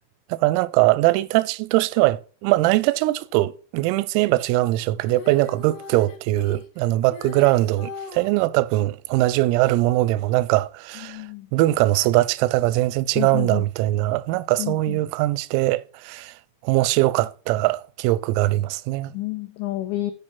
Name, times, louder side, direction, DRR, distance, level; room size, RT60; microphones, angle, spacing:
voice 1, 0.3-11.3 11.5-16.4 16.6-19.1, right 17 dB, 90° right, 3.3 m, -21 dB
Female singing, 5.0-8.3 10.2-10.3, left 3 dB, 70° left, 4.0 m, -38 dB
voice 2, 11.1-11.5 13.2-13.6 14.6-15.0 19.1-20.1, left 17 dB, 90° left, 2.5 m, -29 dB
10.5 x 5.5 x 5.9 m
omnidirectional pair, 5.9 m